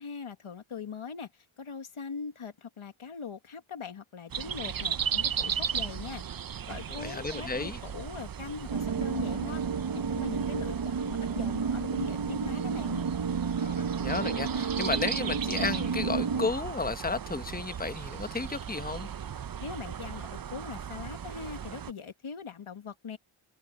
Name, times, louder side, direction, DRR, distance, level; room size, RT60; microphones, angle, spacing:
voice 1, 0.0-6.2 6.7-9.6 10.1-13.0 19.6-23.2, left 5 dB, 85° left, 1.6 m, -41 dB
sound 1, 4.3-21.9, right 8 dB, 45° right, 0.6 m, -37 dB
voice 2, 6.9-7.8 13.6-19.1, left 4 dB, 20° left, 1.1 m, -33 dB
sound 2, 8.7-16.5, right 6 dB, 65° right, 1.1 m, -31 dB
wide cardioid pair, 55°, 48 cm